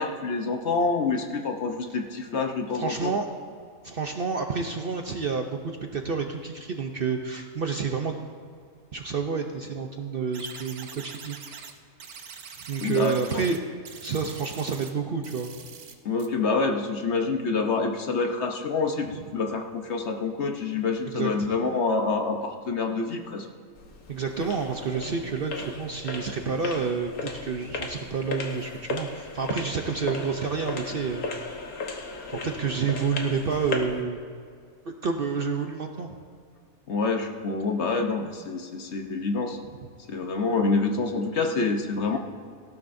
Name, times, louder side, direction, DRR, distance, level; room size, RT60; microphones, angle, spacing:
voice 1, 0.0-3.2 12.8-13.4 16.0-23.5 36.9-39.6 40.1-42.2, left 4 dB, 55° left, 4 dB, 1.1 m, -27 dB
voice 2, 2.7-3.3 3.8-8.2 8.9-11.6 12.7-13.6 14.0-15.5 19.1-19.4 21.1-21.5 24.1-31.2 32.3-34.2 34.8-36.2 39.7-39.8, right 5 dB, 55° right, 4 dB, 0.7 m, -29 dB
sound 1, 10.3-11.7 12.0-13.6 13.9-14.9 15.2-15.9 16.2-16.3, right 6 dB, 85° right, 1.4 m, -43 dB
sound 2, 23.7-34.0, left 3 dB, 75° left, 1.6 m, -36 dB
18.0 x 13.5 x 2.6 m, 2.2 s
omnidirectional pair, 1.5 m